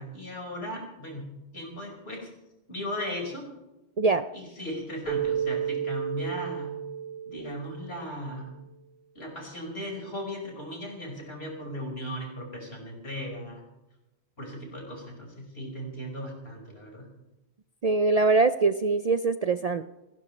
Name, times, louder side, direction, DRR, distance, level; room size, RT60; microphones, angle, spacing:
voice 1, 0.0-2.3 2.7-3.5 4.3-6.8 7.3-8.5 9.2-13.6 14.4-17.1, equal, 70° left, 0 dB, 5.5 m, -37 dB
voice 2, 4.0-4.3 17.8-19.8, right 3 dB, 45° right, 10 dB, 0.5 m, -23 dB
Keyboard (musical), 5.1-8.3, right 9 dB, 50° left, 1.5 m, -32 dB
29.5 x 12.0 x 3.2 m, 1.0 s
omnidirectional pair, 1.1 m